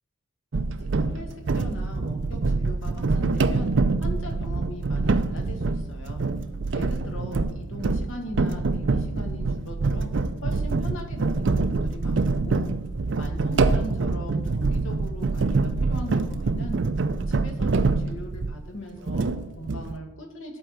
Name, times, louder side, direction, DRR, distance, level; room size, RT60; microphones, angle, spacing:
sound 1, 0.5-18.7 19.1-20.0, right 3 dB, 65° right, 0.5 m, -25 dB
voice 1, 0.7-3.7 4.0-6.2 6.7-10.1 10.4-12.7 13.1-16.8 17.3-20.6, equal, 85° left, 2 dB, 2.0 m, -39 dB
11.0 x 4.6 x 6.5 m, 0.98 s
head